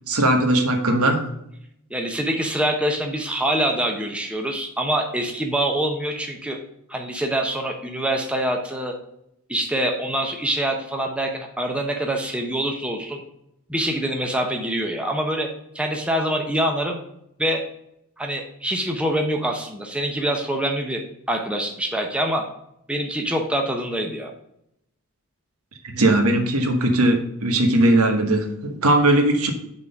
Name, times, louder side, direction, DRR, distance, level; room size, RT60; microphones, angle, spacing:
voice 1, 0.1-1.3 25.8-29.5, right 1 dB, 75° right, 4 dB, 1.2 m, -19 dB
voice 2, 1.9-6.6 6.9-9.0 9.5-13.2 13.7-15.5 15.7-17.0 17.4-17.6 18.2-21.0 21.3-22.4 22.9-24.3, right 1 dB, 5° right, 2 dB, 0.7 m, -25 dB
6.1 x 3.7 x 5.6 m, 0.78 s
head